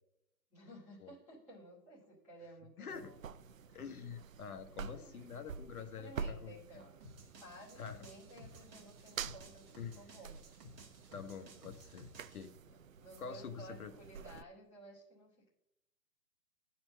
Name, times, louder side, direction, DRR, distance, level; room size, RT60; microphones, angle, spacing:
voice 1, 0.5-3.2 4.7-5.4 5.8-10.5 12.7-15.5, right 1 dB, ahead, -23 dB, 0.7 m, -55 dB
voice 2, 2.8-3.1 3.7-6.6 7.8-8.0 9.8-10.0 11.1-12.5 13.2-13.9, left 6 dB, 60° left, 8 dB, 1.0 m, -46 dB
sound 1, 2.9-14.4, right 6 dB, 55° right, 0.5 m, -48 dB
sound 2, 7.0-12.5, equal, 35° right, 1.8 m, -56 dB
11.0 x 4.4 x 6.1 m, 0.87 s
hypercardioid pair, 175°, 50 cm